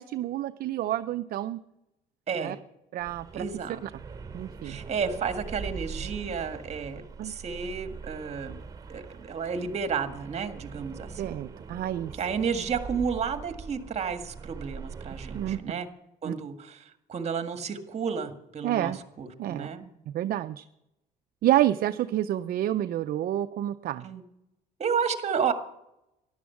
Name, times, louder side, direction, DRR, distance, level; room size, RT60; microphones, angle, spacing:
voice 1, 0.0-1.6 2.4-2.6 2.9-3.4 3.8-3.9 4.3-4.8 7.2-7.3 11.2-12.1 15.3-15.6 16.3-16.4 18.6-19.0 19.4-19.7 20.1-20.6 21.4-24.1, right 13 dB, 60° right, 10 dB, 0.6 m, -28 dB
voice 2, 2.3-2.6 3.3-3.8 4.6-8.6 8.9-11.2 12.2-15.9 16.2-19.9 24.0-24.2 24.8-25.5, right 6 dB, 40° right, 8 dB, 1.8 m, -32 dB
sound 1, 3.0-15.6, right 5 dB, 20° right, 2.4 m, -42 dB
13.5 x 11.5 x 7.2 m, 0.85 s
cardioid pair, 110°, 17 cm